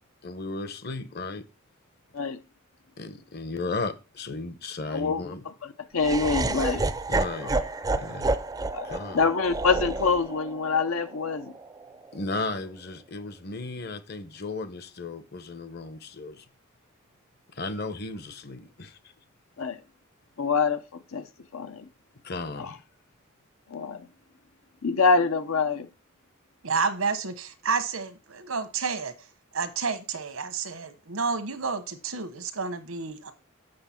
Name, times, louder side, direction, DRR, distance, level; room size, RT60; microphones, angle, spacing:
voice 1, 0.2-1.4 3.0-5.4 7.1-7.6 7.9-8.3 8.8-9.2 12.1-16.5 17.5-19.0 22.2-22.8, left 3 dB, 50° left, 0.8 m, -35 dB
voice 2, 4.9-5.2 5.6-6.8 7.4-7.6 8.7-11.5 19.6-19.8 20.4-21.3 21.5-21.9 22.6-22.7 23.7-24.1 24.8-25.9, left 4 dB, 85° left, 0.7 m, -26 dB
Laughter, 6.0-12.1, right 2 dB, 15° right, 0.4 m, -30 dB
voice 3, 26.6-29.1 29.5-33.3, right 5 dB, 85° right, 1.2 m, -30 dB
7.7 x 6.4 x 4.4 m
head